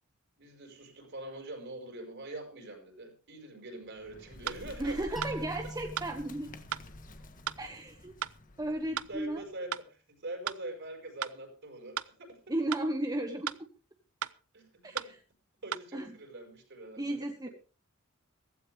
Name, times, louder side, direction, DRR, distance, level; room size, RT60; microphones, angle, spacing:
voice 1, 0.4-5.4 9.1-12.5 14.5-15.1 15.6-17.2, right 1 dB, 55° right, 4 dB, 5.4 m, -44 dB
Bird, 3.8-9.6, left 1 dB, 40° left, 1.4 m, -50 dB
sound 1, 4.5-4.6 5.2-5.4 6.0-6.1 6.7-6.9 7.5-7.6 8.2-8.4 9.0-9.1 9.7-9.9 10.5-10.6 11.2-11.4 12.0-12.1 12.7-12.9 13.5-13.6 14.2-14.4 15.0-15.1 15.7-15.8, right 9 dB, 80° right, 0.6 m, -35 dB
voice 2, 4.8-6.5 7.6-8.1 8.6-9.4 12.5-13.7 14.8-14.9 15.9-16.2 17.0-17.5, right 1 dB, 20° right, 4 dB, 1.1 m, -34 dB
sound 2, 5.2-8.1, right 1 dB, ahead, 2.8 m, -45 dB
16.0 x 15.5 x 3.5 m, 0.37 s
head